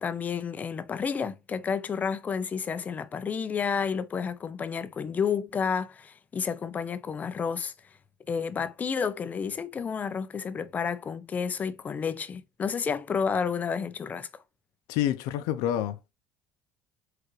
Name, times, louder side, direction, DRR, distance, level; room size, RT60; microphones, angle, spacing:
voice 1, 0.0-7.7 8.3-14.3, left 6 dB, 20° left, 0.4 m, -30 dB
voice 2, 14.9-16.1, left 11 dB, 80° left, 0.5 m, -28 dB
4.6 x 2.4 x 3.1 m
cardioid pair, 155°, 7 cm